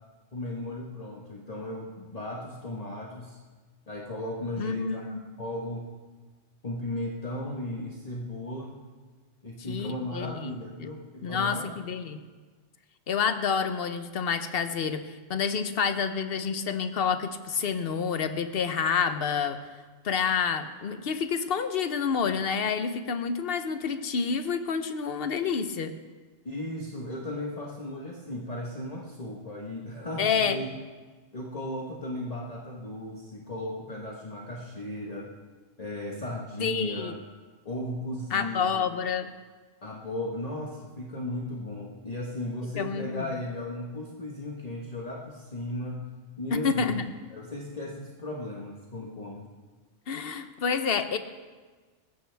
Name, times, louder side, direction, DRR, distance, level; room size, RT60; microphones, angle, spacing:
voice 1, 0.3-3.4 3.9-5.9 6.6-8.8 9.4-11.7 26.4-30.8 31.3-35.3 35.8-37.1 37.6-38.9 39.8-46.1 46.4-47.0 47.3-49.4, left 1 dB, 35° left, -2 dB, 1.4 m, -36 dB
voice 2, 4.6-5.2 9.7-10.9 11.2-12.2 13.1-19.6 20.0-25.9 30.2-30.6 36.6-37.1 38.3-39.3 42.8-43.3 46.5-47.0 50.1-51.2, left 6 dB, 55° left, 9 dB, 1.0 m, -28 dB
20.0 x 15.5 x 3.4 m, 1.4 s
omnidirectional pair, 1.2 m